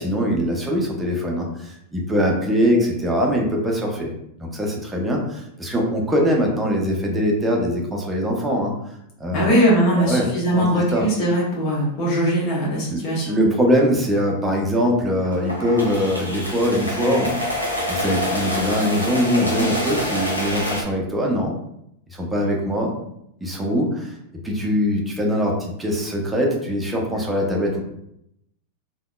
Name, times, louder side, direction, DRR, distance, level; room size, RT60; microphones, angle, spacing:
voice 1, 0.0-4.1 4.4-8.7 9.2-9.5 9.9-10.3 10.6-10.7 10.9-11.0 12.9-21.6 22.1-22.9 23.4-24.1 24.4-27.8, equal, 10° right, -1 dB, 0.6 m, -22 dB
voice 2, 9.3-13.4, equal, 40° left, -5 dB, 1.2 m, -20 dB
sound 1, 15.2-20.8, equal, 85° left, 0.7 m, -26 dB
3.4 x 2.2 x 2.2 m, 0.78 s
figure-of-eight pair, 90°, 0 cm